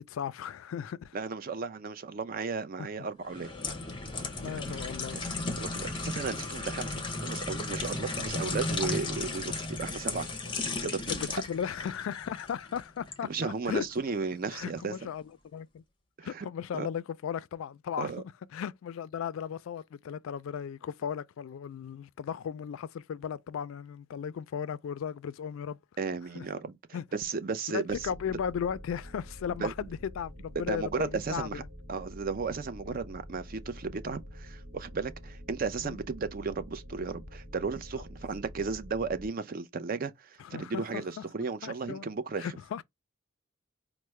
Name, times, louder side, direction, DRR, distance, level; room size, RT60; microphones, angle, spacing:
voice 1, 0.0-1.2 2.8-2.9 4.4-5.2 11.2-13.9 14.5-15.8 16.2-18.1 18.5-25.8 26.3-26.4 26.9-27.0 27.7-31.7 32.9-33.0 35.8-36.0 40.4-41.3 41.6-42.1 42.4-42.8, left 8 dB, 75° left, 0.3 m, -36 dB
voice 2, 1.1-3.5 4.5-4.8 5.6-10.3 10.8-11.3 13.3-14.9 16.2-16.5 16.7-16.9 18.0-18.2 26.0-26.8 27.1-28.1 29.6-29.7 30.6-31.6 31.9-42.5, right 4 dB, 45° right, 0.4 m, -34 dB
sound 1, 3.2-13.2 13.6-13.8, left 3 dB, 25° left, 0.6 m, -35 dB
sound 2, 27.9-39.3, equal, 75° right, 1.1 m, -47 dB
4.5 x 2.0 x 3.1 m
head